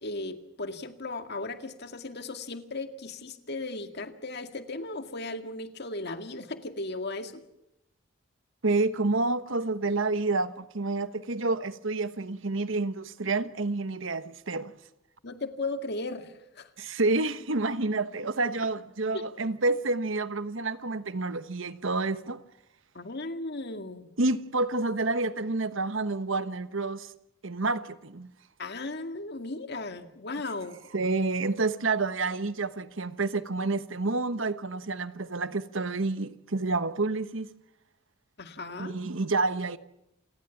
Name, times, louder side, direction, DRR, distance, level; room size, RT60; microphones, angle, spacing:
voice 1, 0.0-7.4 15.2-16.7 19.1-19.2 22.9-24.1 28.6-30.8 38.4-39.0, left 2 dB, 55° left, 2.1 m, -36 dB
voice 2, 8.6-14.7 16.8-22.4 24.2-27.1 27.4-28.3 30.9-37.5 38.8-39.8, right 3 dB, 70° right, 1.2 m, -29 dB
28.5 x 18.5 x 7.2 m
head